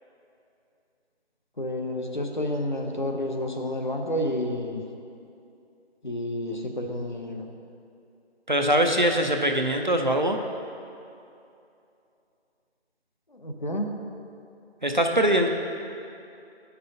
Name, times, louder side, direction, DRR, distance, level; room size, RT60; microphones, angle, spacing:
voice 1, 1.6-4.8 6.0-7.5 13.3-13.9, left 1 dB, 45° left, 2 dB, 0.7 m, -30 dB
voice 2, 8.5-10.4 14.8-15.5, right 1 dB, 45° right, 3 dB, 0.5 m, -22 dB
9.8 x 5.6 x 3.9 m, 2.6 s
figure-of-eight pair, 180°, 33 cm